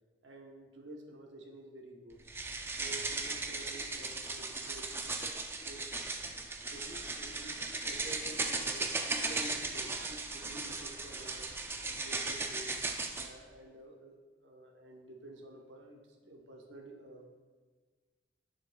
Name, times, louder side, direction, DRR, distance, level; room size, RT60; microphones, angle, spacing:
voice 1, 0.2-2.3 2.8-6.0 6.2-6.4 6.7-12.8 13.1-17.3, right 1 dB, 90° right, 1 dB, 1.0 m, -50 dB
sound 1, 2.3-13.3, right 3 dB, 15° right, 0.4 m, -37 dB
9.6 x 6.4 x 2.3 m, 1.5 s
head